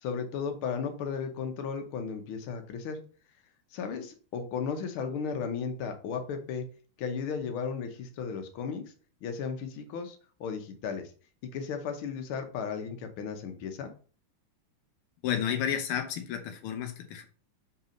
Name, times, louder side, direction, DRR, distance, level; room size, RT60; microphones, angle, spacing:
voice 1, 0.0-3.0 3.7-6.7 7.0-8.8 9.2-11.1 11.5-13.9, left 6 dB, 75° left, 6 dB, 1.8 m, -35 dB
voice 2, 15.2-17.3, left 9 dB, 90° left, 6 dB, 1.7 m, -31 dB
5.6 x 4.1 x 5.2 m, 0.40 s
omnidirectional pair, 2.4 m